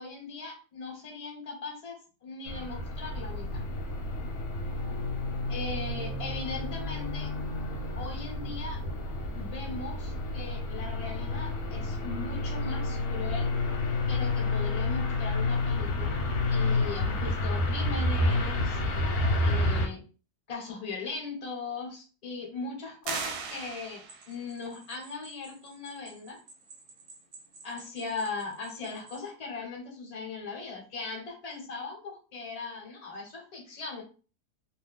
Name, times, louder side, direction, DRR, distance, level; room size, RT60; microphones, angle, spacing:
voice 1, 0.0-3.7 5.5-7.3 8.0-8.8 9.3-13.5 14.1-16.2 16.5-18.8 19.4-20.0 20.5-26.4 27.6-34.0, left 4 dB, 30° left, 0 dB, 0.8 m, -39 dB
sound 1, 2.5-19.9, left 2 dB, 70° left, 1.1 m, -30 dB
sound 2, 23.0-24.4, right 5 dB, 75° right, 1.1 m, -36 dB
sound 3, 24.1-29.3, right 3 dB, 50° right, 1.0 m, -54 dB
2.7 x 2.2 x 3.5 m, 0.35 s
omnidirectional pair, 1.7 m